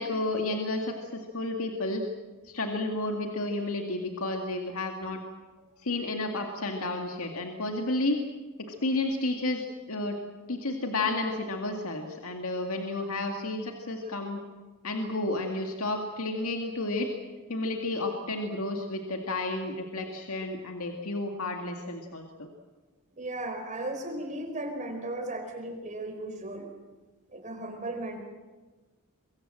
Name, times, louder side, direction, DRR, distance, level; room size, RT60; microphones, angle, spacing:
voice 1, 0.0-2.0 2.4-5.2 5.8-8.2 8.6-10.2 10.5-14.4 14.8-17.1 17.5-22.5, left 2 dB, 70° left, 3 dB, 2.2 m, -31 dB
voice 2, 23.2-26.7 27.3-28.2, right 1 dB, 35° right, 5 dB, 4.4 m, -36 dB
24.0 x 22.5 x 7.7 m, 1.3 s
head